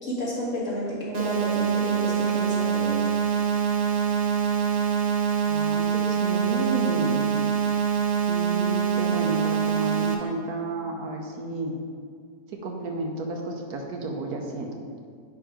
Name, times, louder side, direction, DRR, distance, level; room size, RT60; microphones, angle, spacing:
voice 1, 0.0-3.0, equal, 50° left, -7 dB, 2.4 m, -31 dB
sound 1, 1.1-10.1, right 7 dB, 55° right, 0.4 m, -24 dB
voice 2, 5.5-7.2 8.3-11.8 12.5-15.0, right 2 dB, 75° right, 2 dB, 1.3 m, -32 dB
9.6 x 3.5 x 5.0 m, 2.1 s
omnidirectional pair, 1.7 m